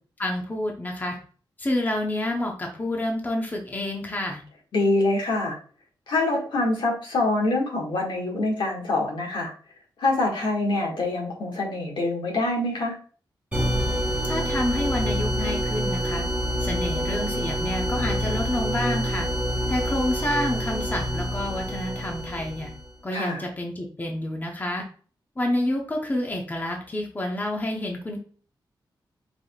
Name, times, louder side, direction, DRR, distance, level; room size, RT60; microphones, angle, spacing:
voice 1, 0.2-1.2 1.6-4.4 14.2-16.2 16.6-19.3 19.7-22.7 23.0-24.8 25.4-28.2, left 1 dB, 20° left, 1 dB, 0.8 m, -28 dB
voice 2, 4.7-5.6 6.1-9.5 10.0-12.9 23.1-23.4, left 2 dB, 75° left, -1 dB, 1.6 m, -25 dB
sound 1, 13.5-22.9, equal, 15° right, 1.3 m, -27 dB
4.9 x 3.7 x 2.3 m, 0.41 s
wide cardioid pair, 115°, 8 cm